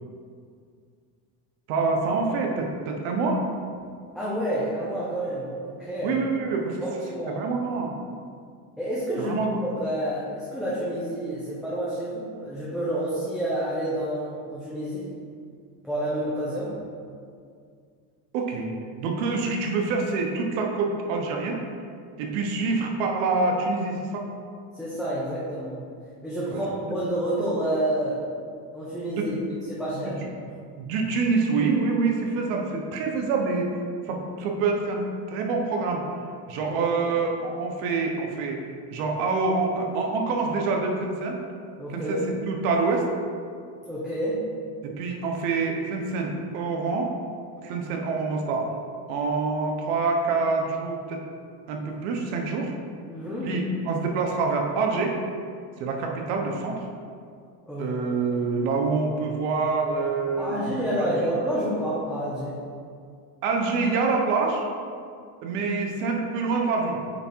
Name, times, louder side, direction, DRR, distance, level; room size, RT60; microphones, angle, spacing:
voice 1, 1.7-3.4 6.0-6.8 7.3-7.9 9.2-9.7 18.3-21.6 22.2-24.3 26.5-26.6 29.1-29.3 29.9-30.1 30.8-33.7 34.1-35.0 35.3-36.0 36.5-38.6 38.9-41.4 41.9-42.2 42.5-43.0 44.8-47.1 47.6-48.7 49.1-51.2 51.7-52.7 53.5-55.2 55.8-56.9 57.8-61.1 63.4-64.7 65.4-67.0, right 4 dB, 85° right, 2 dB, 1.2 m, -26 dB
voice 2, 4.1-6.2 6.8-7.4 8.8-15.1 15.8-16.7 24.7-25.8 26.2-28.2 28.7-29.3 29.7-30.2 36.6-36.9 41.8-42.3 43.8-44.4 53.1-53.5 57.7-57.9 60.4-62.5, right 1 dB, ahead, -10 dB, 1.2 m, -29 dB
8.4 x 3.5 x 4.6 m, 2.2 s
cardioid pair, 135°, 45 cm